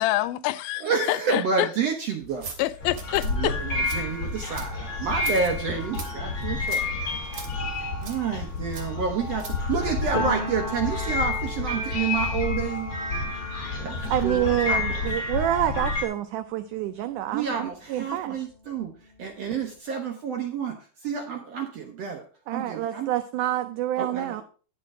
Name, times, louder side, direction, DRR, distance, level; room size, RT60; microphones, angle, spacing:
voice 1, 0.0-1.7 2.6-3.5, left 16 dB, 85° left, 2.4 m, -26 dB
voice 2, 0.8-2.5 3.1-6.8 8.0-12.9 13.8-14.8 17.3-18.9 19.2-20.8 21.0-22.3 22.5-23.1 24.0-24.4, right 5 dB, 65° right, 1.6 m, -29 dB
sound 1, 2.2-10.2, right 4 dB, 45° right, 1.7 m, -43 dB
sound 2, 2.8-16.0, left 3 dB, 35° left, 3.5 m, -30 dB
Piano, 10.1-17.7 18.1-19.6, left 1 dB, 10° left, 3.2 m, -38 dB
voice 3, 14.1-18.4 22.5-24.4, right 13 dB, 85° right, 1.7 m, -27 dB
10.0 x 6.6 x 4.8 m
omnidirectional pair, 4.2 m